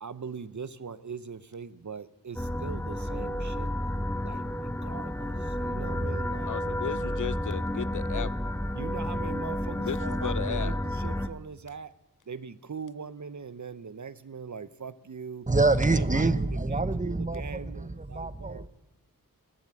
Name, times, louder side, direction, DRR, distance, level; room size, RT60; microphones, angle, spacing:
voice 1, 0.0-6.9 8.7-11.9 12.3-15.5 15.8-16.3 16.7-18.7, right 6 dB, 55° right, 0.8 m, -41 dB
sound 1, 2.4-11.3, left 1 dB, 5° left, 0.8 m, -31 dB
voice 2, 6.5-8.3 9.8-10.8, left 8 dB, 60° left, 0.4 m, -35 dB
voice 3, 15.5-18.7, right 3 dB, 20° right, 0.9 m, -26 dB
19.5 x 7.5 x 8.6 m
wide cardioid pair, 50°, 35 cm